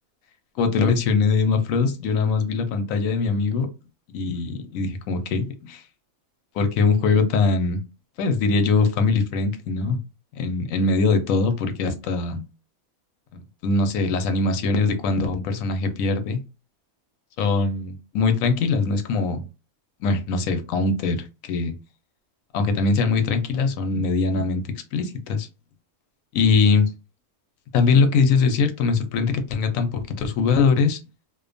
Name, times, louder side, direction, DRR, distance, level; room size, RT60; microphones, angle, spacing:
voice 1, 0.6-3.7 4.1-5.8 6.5-7.8 8.2-10.0 10.4-12.4 13.3-16.4 17.4-19.5 20.0-21.7 22.5-24.6 24.9-25.5 26.3-26.9 27.7-31.0, left 4 dB, 75° left, 0.9 m, -22 dB
2.6 x 2.2 x 2.5 m
omnidirectional pair, 1.5 m